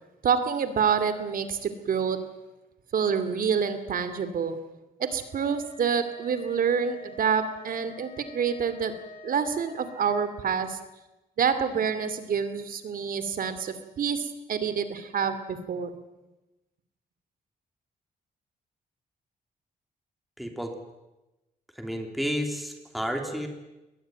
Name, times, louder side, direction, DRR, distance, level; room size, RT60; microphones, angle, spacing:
voice 1, 0.2-2.2 2.9-4.6 5.0-8.9 9.2-10.8 11.4-15.9, right 6 dB, 65° right, 12 dB, 2.6 m, -27 dB
sound 1, 5.3-10.4, left 2 dB, 55° left, 7.9 m, -47 dB
voice 2, 20.4-20.7 21.8-23.5, equal, ahead, 3 dB, 3.2 m, -31 dB
21.0 x 20.0 x 9.3 m, 1.0 s
wide cardioid pair, 135°, 16 cm